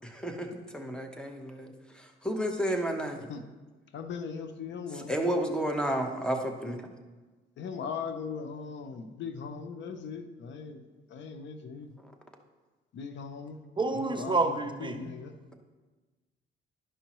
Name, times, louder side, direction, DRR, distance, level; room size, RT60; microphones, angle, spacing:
voice 1, 0.0-1.7 1.9-3.2 5.1-6.8, equal, 5° left, 3 dB, 1.0 m, -31 dB
voice 2, 3.9-5.1 7.6-10.8 11.1-11.9 12.9-13.6 13.9-15.3, left 5 dB, 65° left, 8 dB, 0.7 m, -39 dB
voice 3, 13.8-14.9, right 3 dB, 25° right, 6 dB, 0.5 m, -28 dB
11.5 x 5.4 x 3.0 m, 1.3 s
cardioid pair, 90°, 20 cm